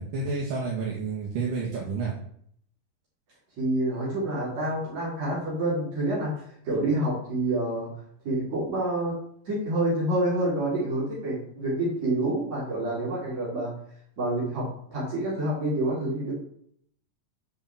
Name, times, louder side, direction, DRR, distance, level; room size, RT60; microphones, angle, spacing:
voice 1, 0.0-2.1, right 4 dB, 75° right, -4 dB, 3.7 m, -30 dB
voice 2, 3.6-6.3 6.6-7.9 8.2-9.2 9.4-13.7 14.2-16.3, right 1 dB, 55° right, -7 dB, 5.0 m, -27 dB
10.5 x 6.0 x 7.4 m, 0.67 s
omnidirectional pair, 3.9 m